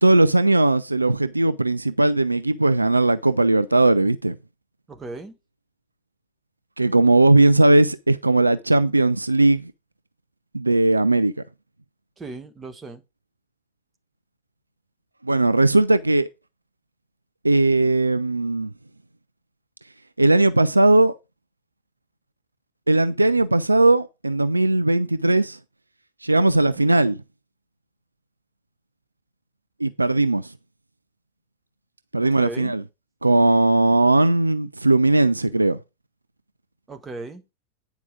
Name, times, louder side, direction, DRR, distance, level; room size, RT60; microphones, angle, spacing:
voice 1, 0.0-4.4 6.8-9.7 10.5-11.3 15.2-16.3 17.4-18.7 20.2-21.2 22.9-25.6 26.2-27.2 29.8-30.5 32.1-32.8 33.2-35.8, right 2 dB, 85° right, 0.4 m, -18 dB
voice 2, 4.9-5.3 12.2-13.0 26.5-26.8 32.2-32.8 36.9-37.4, right 3 dB, 20° right, 1.3 m, -37 dB
9.2 x 4.7 x 5.1 m
figure-of-eight pair, 90°, 0 cm